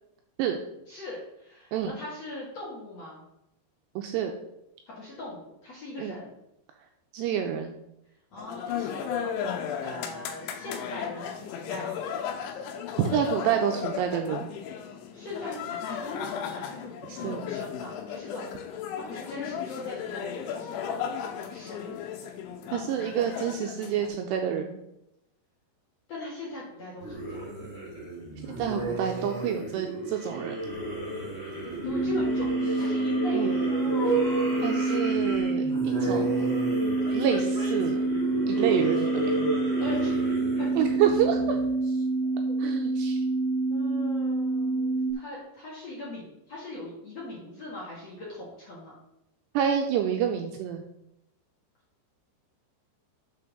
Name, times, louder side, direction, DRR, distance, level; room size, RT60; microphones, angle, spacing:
voice 1, 0.9-3.2 5.0-6.4 8.3-9.5 9.8-12.1 14.9-18.4 19.1-21.0 21.5-22.0 26.1-27.5 31.8-33.7 39.8-40.7 42.4-42.8 43.7-48.9, left 2 dB, 50° left, -5 dB, 2.2 m, -40 dB
voice 2, 4.0-4.3 6.0-6.2 7.1-7.7 13.0-14.5 17.1-17.4 22.7-24.8 28.5-30.6 33.3-33.5 34.6-36.3 37.1-38.0 38.5-39.1 40.8-41.6 42.6-43.2 49.5-50.8, right 9 dB, 80° right, 4 dB, 2.7 m, -28 dB
sound 1, 8.4-24.1, left 8 dB, 90° left, 3.3 m, -35 dB
sound 2, 27.0-41.9, right 2 dB, 25° left, 1.2 m, -32 dB
sound 3, 31.8-45.1, right 3 dB, 75° left, 3.3 m, -27 dB
7.1 x 5.9 x 6.0 m, 0.83 s
omnidirectional pair, 5.2 m